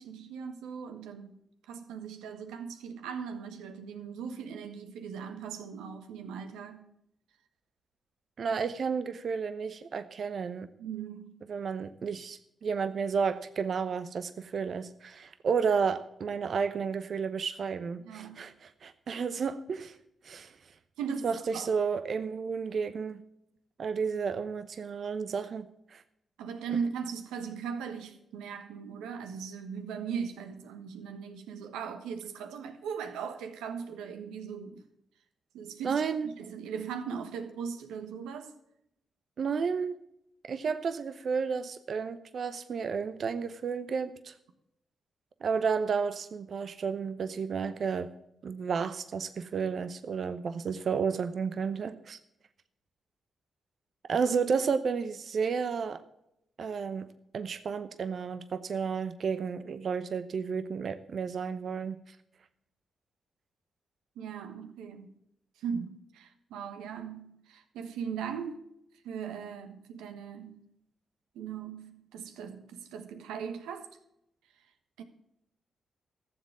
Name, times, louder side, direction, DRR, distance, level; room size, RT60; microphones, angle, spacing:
voice 1, 0.0-1.3 1.7-6.9 10.8-11.4 18.0-18.4 21.0-21.7 26.4-34.8 35.5-38.5 64.2-65.1 65.6-68.6 69.0-70.6 71.3-73.9 75.0-75.1, right 6 dB, 85° right, 1.3 m, -39 dB
voice 2, 8.4-10.7 11.5-20.0 20.2-20.5 21.2-23.2 23.8-26.0 35.8-36.3 39.4-40.0 40.5-44.3 45.4-48.1 48.4-52.2 54.1-56.0 56.6-57.1 57.3-62.0, right 6 dB, 60° right, 0.8 m, -32 dB
14.0 x 7.5 x 7.2 m
supercardioid pair, 45°, 0 cm